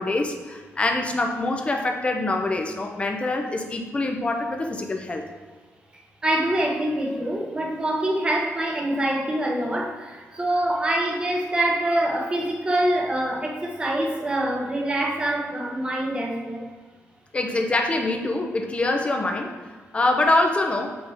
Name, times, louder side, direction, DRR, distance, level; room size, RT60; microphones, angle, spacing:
voice 1, 0.0-5.2 17.3-21.0, left 2 dB, 25° left, 3 dB, 0.7 m, -25 dB
voice 2, 6.2-16.7, right 1 dB, 20° right, 0 dB, 1.0 m, -25 dB
7.7 x 5.2 x 3.5 m, 1.5 s
wide cardioid pair, 165°, 5 cm